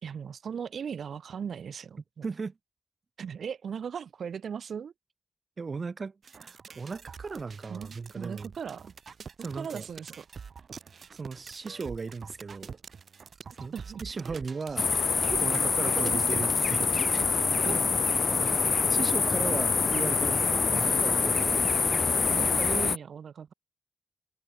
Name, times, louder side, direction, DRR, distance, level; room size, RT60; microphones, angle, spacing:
voice 1, 0.0-2.2 3.2-4.9 7.7-8.9 9.5-10.3 13.7-14.0 14.3-14.4 15.3-16.5 20.7-21.0 22.3-23.5, right 7 dB, 75° right, 5.1 m, -38 dB
voice 2, 2.2-2.5 5.6-8.5 9.4-9.9 11.1-12.8 13.6-13.7 14.0-14.9 15.4-17.2 17.6-17.8 18.9-21.9, right 4 dB, 40° right, 4.7 m, -37 dB
sound 1, 6.2-17.4, right 6 dB, 55° right, 2.4 m, -46 dB
sound 2, 14.8-23.0, left 5 dB, 45° left, 1.0 m, -25 dB
wide cardioid pair, 145°, 0 cm